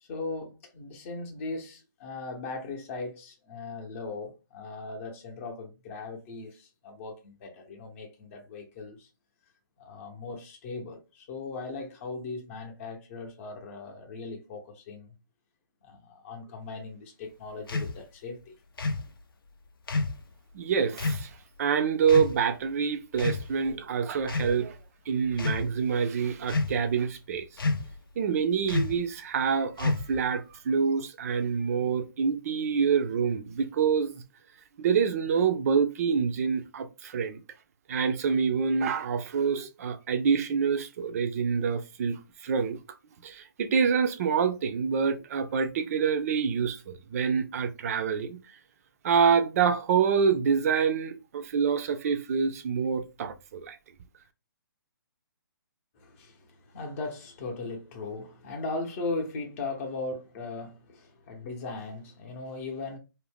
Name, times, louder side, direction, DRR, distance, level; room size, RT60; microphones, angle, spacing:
voice 1, 0.0-9.1 9.8-15.1 15.8-18.6 56.0-63.0, left 3 dB, 35° left, 0.7 m, -38 dB
sound 1, 17.7-17.9 18.8-19.1 19.9-20.2 21.0-21.2 22.1-22.4 23.1-23.7 24.2-24.6 25.3-25.6 26.5-26.9 27.6-28.0 28.7-29.0 29.8-30.3, left 3 dB, 75° left, 0.6 m, -29 dB
voice 2, 20.5-21.3 21.6-24.8 25.1-27.5 28.2-34.2 34.8-37.4 37.9-42.8 43.2-48.4 49.0-53.8, right 6 dB, 40° right, 0.4 m, -26 dB
2.5 x 2.1 x 3.4 m
hypercardioid pair, 145°, 12 cm